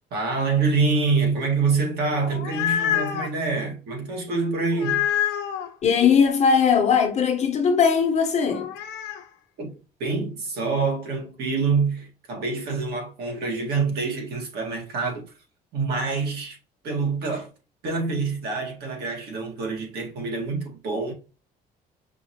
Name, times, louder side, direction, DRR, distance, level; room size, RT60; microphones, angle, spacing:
voice 1, 0.1-5.1 9.6-9.7 10.0-15.3 15.7-16.6 16.8-17.5 17.8-21.1, right 4 dB, 70° right, 1.8 m, -26 dB
sound 1, 2.2-3.3 4.7-5.7 8.5-9.2, left 10 dB, 85° left, 0.7 m, -26 dB
voice 2, 5.8-8.7, left 6 dB, 40° left, 1.0 m, -19 dB
5.5 x 2.7 x 2.8 m
cardioid pair, 110°, 17 cm